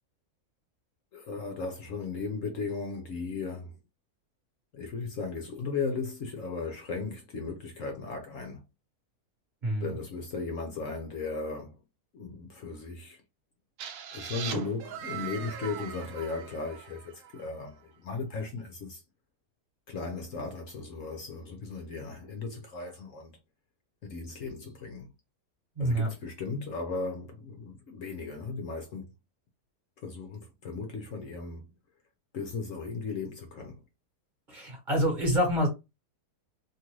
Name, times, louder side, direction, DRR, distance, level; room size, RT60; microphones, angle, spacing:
voice 1, 1.1-3.7 4.7-8.6 9.8-11.8 12.1-13.2 14.1-19.0 19.9-23.4 24.0-25.1 25.8-29.1 30.0-31.7 32.3-33.8, left 4 dB, 65° left, 0.9 m, -36 dB
sound 1, 13.8-17.5, right 8 dB, 70° right, 0.9 m, -40 dB
voice 2, 25.8-26.1 34.5-35.7, equal, 35° right, 1.2 m, -26 dB
2.9 x 2.5 x 3.0 m
omnidirectional pair, 1.7 m